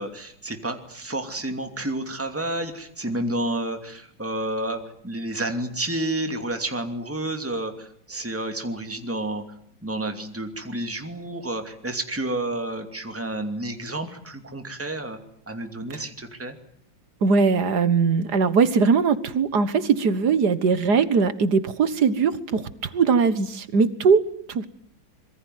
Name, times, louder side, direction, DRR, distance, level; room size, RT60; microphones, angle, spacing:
voice 1, 0.0-9.4 9.8-15.2 15.5-16.6, right 1 dB, 5° right, 6 dB, 2.6 m, -30 dB
voice 2, 17.2-24.7, right 5 dB, 60° right, 14 dB, 2.0 m, -21 dB
26.0 x 23.0 x 9.4 m, 0.63 s
omnidirectional pair, 2.1 m